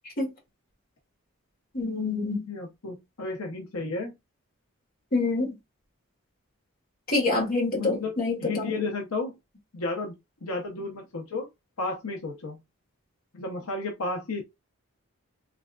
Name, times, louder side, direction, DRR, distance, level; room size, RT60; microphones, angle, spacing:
voice 1, 1.7-2.5 5.1-5.6 7.1-8.7, left 3 dB, 40° left, 1.7 m, -26 dB
voice 2, 2.5-4.1 7.8-8.1 8.4-9.3 9.7-10.2 10.4-11.5 11.8-12.6 13.3-14.4, left 3 dB, 85° left, 0.8 m, -32 dB
3.5 x 3.3 x 2.4 m
head